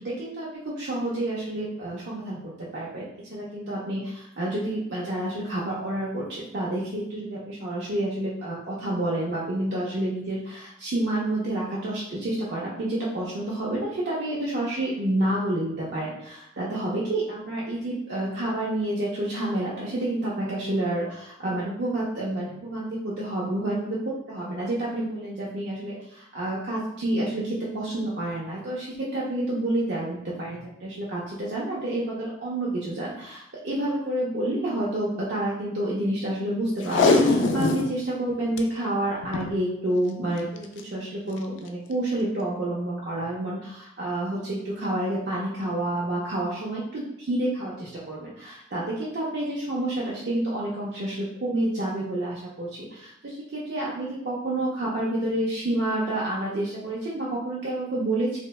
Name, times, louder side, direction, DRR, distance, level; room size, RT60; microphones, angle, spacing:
voice 1, 0.0-24.0 24.3-58.4, right 1 dB, 70° right, -6 dB, 0.5 m, -29 dB
Packing tape duct tape, 36.8-37.9 38.3-38.4 38.6-38.7 39.2-39.5 40.6-40.8 41.4-41.5, left 3 dB, 85° left, 0.3 m, -21 dB
3.0 x 2.1 x 2.2 m, 0.78 s
head